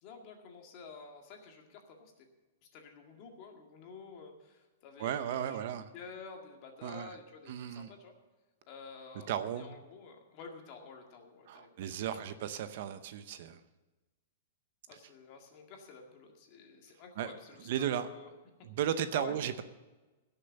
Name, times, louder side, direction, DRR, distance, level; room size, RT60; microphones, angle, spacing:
voice 1, 0.0-2.3 2.7-5.7 5.9-8.1 8.7-11.9 14.9-18.3 19.1-19.4, left 5 dB, 30° left, 2 dB, 2.0 m, -50 dB
voice 2, 5.0-5.9 6.8-7.2 7.5-7.9 9.3-9.7 11.5-13.6 17.2-17.3 17.7-18.1 18.6-19.6, right 10 dB, 45° right, 11 dB, 0.7 m, -35 dB
16.5 x 6.9 x 6.9 m, 1.2 s
supercardioid pair, 175°, 0 cm